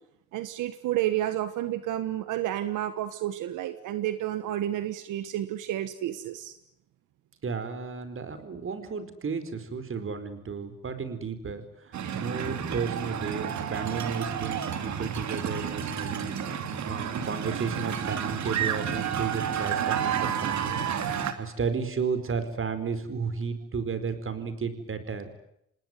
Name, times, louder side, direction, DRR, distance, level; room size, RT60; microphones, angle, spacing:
voice 1, 0.3-6.5 12.1-12.2, right 13 dB, 90° right, 11 dB, 1.4 m, -30 dB
voice 2, 7.4-16.3 16.9-20.8 21.4-25.3, right 5 dB, 45° right, 11 dB, 4.6 m, -33 dB
sound 1, 11.9-21.3, right 8 dB, 65° right, 2.9 m, -31 dB
27.5 x 19.5 x 9.6 m, 0.79 s
cardioid pair, 90°, 30 cm